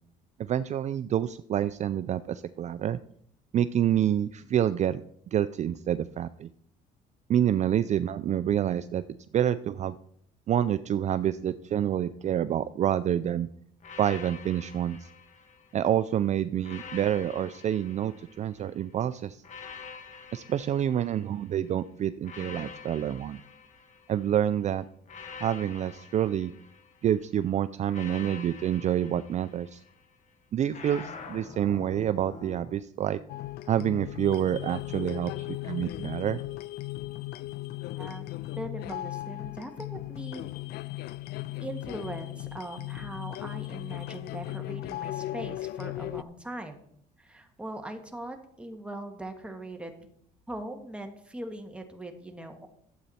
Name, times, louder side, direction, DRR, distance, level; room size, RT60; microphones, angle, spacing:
voice 1, 0.4-3.0 3.5-5.0 5.3-6.5 7.3-9.0 9.3-9.9 10.5-13.5 14.0-15.1 15.7-19.4 20.3-23.4 24.1-24.8 25.4-26.5 27.0-29.8 30.5-33.2 33.7-36.4, right 10 dB, 45° right, 13 dB, 0.4 m, -27 dB
sound 1, 13.8-16.0 16.6-18.8 19.4-21.6 22.2-24.4 25.1-27.2 27.9-30.0 30.7-32.7, left 5 dB, 45° left, 1.3 m, -46 dB
sound 2, 33.3-46.2, left 16 dB, 70° left, 0.4 m, -37 dB
voice 2, 38.0-38.3 38.6-40.4 41.6-46.8 47.2-50.1 50.5-52.7, right 1 dB, 5° right, 4 dB, 1.7 m, -40 dB
12.5 x 8.1 x 4.3 m, 0.67 s
cardioid pair, 110°, 17 cm